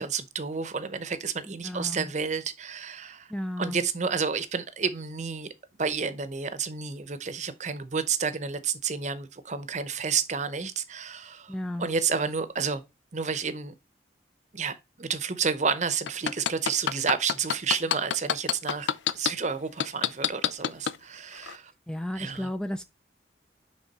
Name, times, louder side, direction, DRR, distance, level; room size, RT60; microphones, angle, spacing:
voice 1, 0.0-3.3 3.6-5.5 5.8-12.8 13.1-13.7 14.5-18.9 19.1-21.7 22.2-22.5, right 5 dB, 40° right, 0.7 m, -30 dB
voice 2, 1.5-2.1 3.3-3.8 11.5-11.9 21.9-22.8, left 1 dB, 5° left, 0.3 m, -33 dB
sound 1, 16.1-19.3 19.8-21.0 21.4-21.5, left 9 dB, 85° left, 0.5 m, -25 dB
8.8 x 3.6 x 4.1 m
head